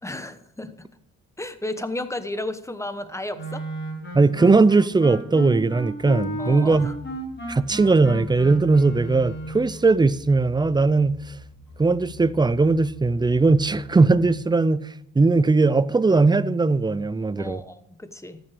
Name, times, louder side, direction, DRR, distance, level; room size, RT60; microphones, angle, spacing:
voice 1, 0.0-0.9 1.4-3.6 6.4-7.0 17.4-18.4, left 1 dB, 10° left, 1.0 m, -33 dB
Wind instrument woodwind instrument, 3.3-9.7, right 1 dB, 35° left, 4.9 m, -34 dB
voice 2, 4.1-6.9 7.5-11.2 11.8-14.9 15.1-17.6, right 3 dB, 15° right, 0.5 m, -19 dB
sound 1, 6.6-14.4, left 1 dB, 85° left, 3.7 m, -46 dB
14.0 x 8.9 x 5.0 m
cardioid pair, 100°, 34 cm